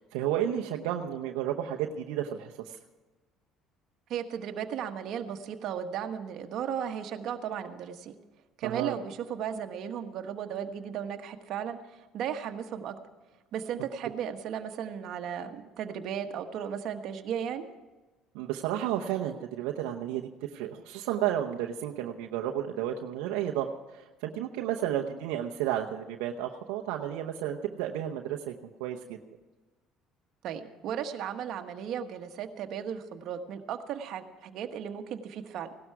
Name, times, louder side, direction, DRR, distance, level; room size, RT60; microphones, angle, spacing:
voice 1, 0.1-2.8 8.6-9.0 18.3-28.5 28.8-29.2, right 11 dB, 85° right, 1 dB, 0.8 m, -32 dB
voice 2, 4.1-8.1 8.6-12.9 13.5-17.7 30.4-35.7, right 8 dB, 65° right, 6 dB, 1.3 m, -35 dB
17.0 x 12.5 x 4.8 m, 1.2 s
supercardioid pair, 90°, 0 cm